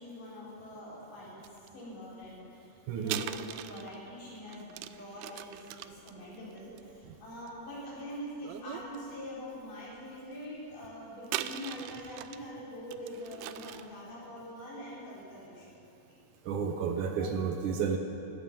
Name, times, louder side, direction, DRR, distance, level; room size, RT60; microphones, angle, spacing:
voice 1, 0.0-16.2 16.9-17.4, equal, 65° left, -7 dB, 6.0 m, -44 dB
sound 1, 1.4-1.7 3.0-7.8 8.4-9.0 9.4-9.5 11.2-12.5 12.9-14.0, right 13 dB, 90° right, 1.7 m, -40 dB
voice 2, 2.9-3.2 7.1-7.2 16.5-18.0, right 6 dB, 70° right, 4 dB, 2.1 m, -31 dB
17.0 x 13.0 x 5.5 m, 2.8 s
omnidirectional pair, 4.1 m